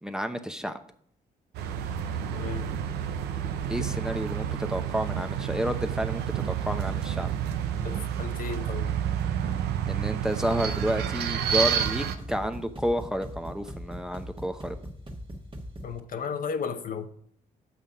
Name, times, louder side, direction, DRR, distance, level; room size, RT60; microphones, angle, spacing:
voice 1, 0.0-0.8 3.7-7.3 9.8-14.8, equal, 5° right, 0.8 m, -30 dB
sound 1, 1.5-12.1, right 9 dB, 90° right, 0.6 m, -29 dB
voice 2, 2.3-2.7 7.8-9.0 15.8-17.1, left 6 dB, 55° left, 0.8 m, -34 dB
sound 2, 10.4-16.0, equal, 30° right, 1.6 m, -41 dB
6.8 x 5.7 x 5.3 m
supercardioid pair, 60°, 17 cm